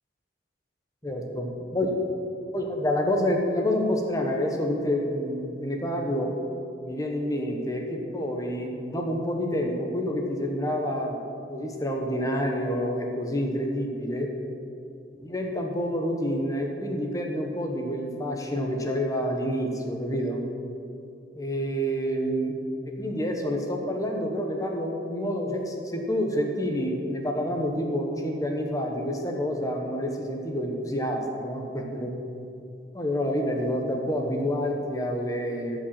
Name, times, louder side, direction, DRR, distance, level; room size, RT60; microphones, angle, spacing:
voice 1, 1.0-1.9 2.5-6.3 6.8-11.2 11.5-14.3 15.2-20.4 21.3-22.6 22.9-32.1 32.9-35.8, equal, 20° left, 1 dB, 1.1 m, -28 dB
12.5 x 5.2 x 7.6 m, 2.6 s
head